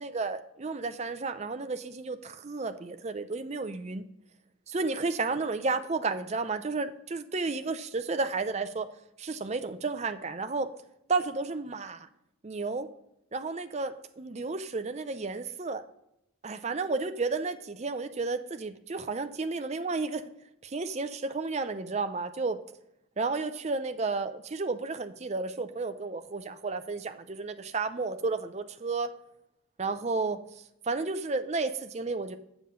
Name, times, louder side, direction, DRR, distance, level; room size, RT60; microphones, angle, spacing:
voice 1, 0.0-4.1 4.7-8.9 9.2-10.7 11.1-12.1 12.4-12.9 13.3-15.8 16.4-20.2 20.6-22.6 23.2-29.1 29.8-32.4, right 3 dB, 30° right, 10 dB, 0.5 m, -32 dB
7.4 x 7.0 x 3.7 m, 0.80 s
head